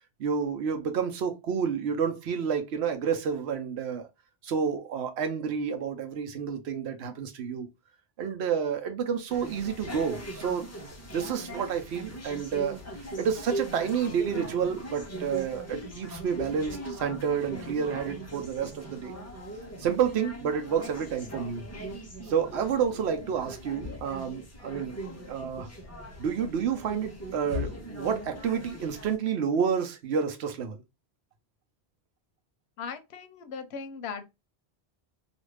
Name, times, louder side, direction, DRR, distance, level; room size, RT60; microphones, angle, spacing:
voice 1, 0.2-4.1 4.4-7.7 8.2-10.7 11.1-12.8 13.2-19.1 19.8-21.6 22.2-25.0 25.3-25.7 26.2-30.8, right 7 dB, 80° right, 0.9 m, -29 dB
sound 1, 9.3-29.2, equal, 20° left, 0.6 m, -40 dB
voice 2, 32.8-34.2, left 6 dB, 85° left, 0.8 m, -38 dB
2.5 x 2.4 x 3.2 m
omnidirectional pair, 1.1 m